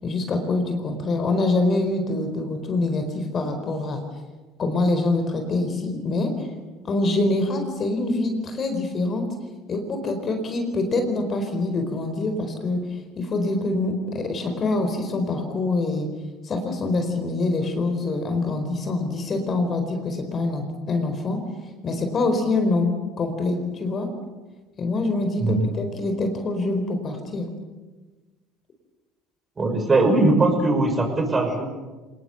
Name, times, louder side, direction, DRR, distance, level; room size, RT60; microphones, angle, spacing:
voice 1, 0.0-4.0 4.6-6.5 6.8-9.3 9.7-12.8 13.2-16.1 16.4-21.4 21.8-24.1 24.8-27.5, left 2 dB, 35° left, 6 dB, 4.5 m, -25 dB
voice 2, 25.4-25.7 29.6-31.6, right 2 dB, 25° right, 4 dB, 6.2 m, -20 dB
27.0 x 19.5 x 8.0 m, 1.2 s
figure-of-eight pair, 65°, 0 cm